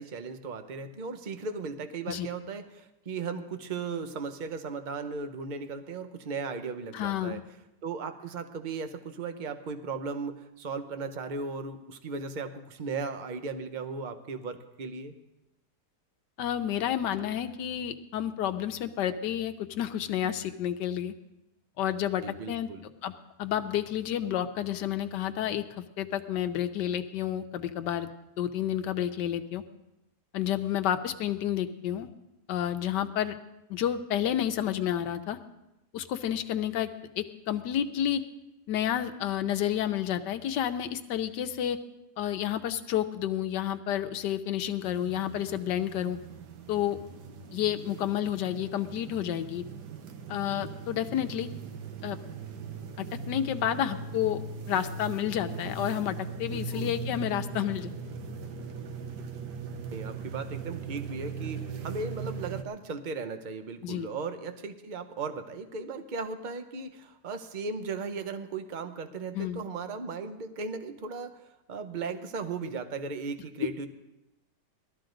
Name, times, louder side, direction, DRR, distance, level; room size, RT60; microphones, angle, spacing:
voice 1, 0.0-7.4 7.8-15.1 22.2-22.8 56.5-57.0 59.9-71.4 71.7-73.9, right 4 dB, 40° right, 8 dB, 0.7 m, -36 dB
voice 2, 6.9-7.4 16.4-21.1 21.8-22.7 23.0-23.1 23.4-28.1 28.4-29.6 30.3-32.1 32.5-33.4 33.7-35.4 35.9-36.9 37.2-38.2 38.7-41.8 42.2-46.2 46.7-47.0 47.5-49.6 50.3-51.5 52.0-52.2 53.0-54.4 54.7-57.9 63.8-64.1 69.3-69.6, left 10 dB, 85° left, 8 dB, 1.4 m, -30 dB
sound 1, 44.8-62.6, right 5 dB, 80° right, 1.6 m, -39 dB
18.5 x 13.0 x 3.9 m, 0.92 s
omnidirectional pair, 1.8 m